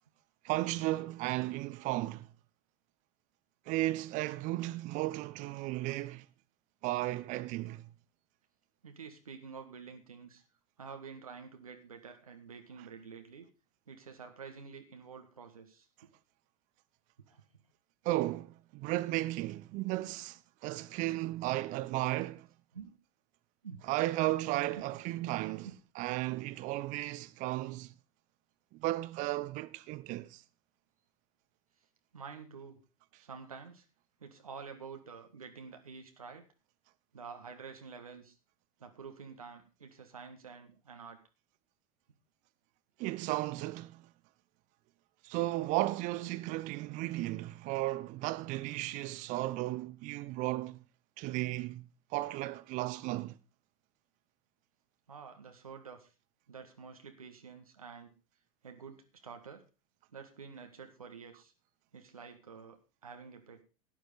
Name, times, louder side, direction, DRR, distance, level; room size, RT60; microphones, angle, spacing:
voice 1, 0.4-2.3 3.7-6.3 6.8-7.9 18.0-22.5 23.9-25.7 26.0-27.9 28.7-30.4 43.0-44.1 45.2-50.8 51.2-53.4, right 18 dB, 45° right, 0.9 m, -34 dB
voice 2, 8.8-10.4 10.8-13.5 13.9-15.9 17.3-17.4 22.7-23.0 23.6-23.8 24.8-25.0 32.1-32.8 33.2-33.9 34.2-36.5 37.1-38.4 38.8-41.2 55.1-56.1 56.5-58.1 58.6-59.6 60.1-61.5 61.9-63.6, right 5 dB, 85° right, 1.7 m, -49 dB
12.0 x 10.0 x 4.9 m
figure-of-eight pair, 90°, 18 cm